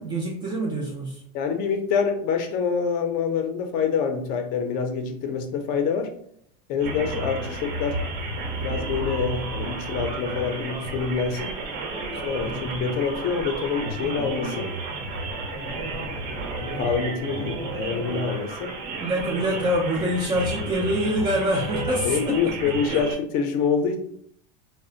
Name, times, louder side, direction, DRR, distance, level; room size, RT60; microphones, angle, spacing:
voice 1, 0.0-1.2 19.0-22.5 22.9-23.0, equal, 20° right, -2 dB, 0.4 m, -25 dB
voice 2, 1.3-6.1 6.7-8.0 8.6-11.6 12.2-14.7 15.5-16.3 16.6-18.7 22.0-24.0, left 6 dB, 40° left, 5 dB, 0.5 m, -26 dB
sound 1, 6.8-23.2, right 2 dB, 90° right, 0.9 m, -32 dB
3.8 x 2.1 x 2.4 m, 0.68 s
supercardioid pair, 150°, 21 cm